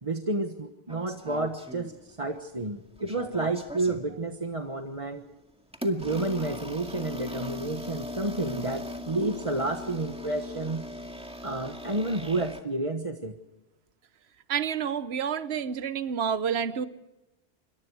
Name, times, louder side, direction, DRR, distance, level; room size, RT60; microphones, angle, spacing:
voice 1, 0.0-5.2 5.8-10.8 11.4-13.4, right 2 dB, 30° right, 5 dB, 1.3 m, -30 dB
sound 1, 0.9-2.4 2.7-4.1 4.7-4.9 5.7-12.6, left 1 dB, 5° right, 2.1 m, -40 dB
voice 2, 14.5-16.9, right 7 dB, 75° right, 13 dB, 1.2 m, -29 dB
27.0 x 23.5 x 4.8 m, 1.0 s
omnidirectional pair, 1.1 m